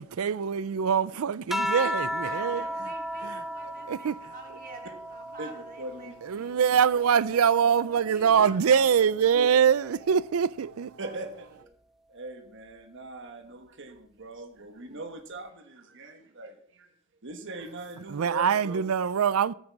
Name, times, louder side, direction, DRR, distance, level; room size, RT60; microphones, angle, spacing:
voice 1, 0.0-2.6 3.2-3.4 3.9-4.2 6.3-10.9 18.1-19.5, right 7 dB, 85° right, 0.4 m, -24 dB
sound 1, 1.5-6.3 6.8-8.5 9.7-10.2, equal, ahead, 1.0 m, -35 dB
voice 2, 2.1-7.1 7.6-10.1 11.0-11.2, right 3 dB, 45° right, 3.9 m, -49 dB
voice 3, 5.4-6.5 9.3-9.5 11.0-11.5 12.1-16.9 17.2-18.9, right 2 dB, 60° right, 1.3 m, -41 dB
15.0 x 14.0 x 4.7 m
head